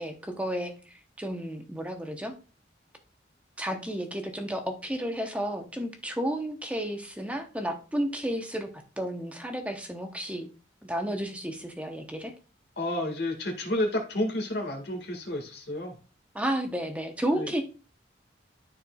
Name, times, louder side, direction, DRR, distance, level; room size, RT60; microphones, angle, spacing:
voice 1, 0.0-2.3 3.6-8.7 9.0-10.5 10.8-12.3 16.3-17.6, equal, 5° right, 4 dB, 0.8 m, -32 dB
voice 2, 12.8-16.0 17.3-17.5, left 1 dB, 60° left, 3 dB, 1.8 m, -30 dB
12.5 x 4.4 x 2.3 m, 0.34 s
head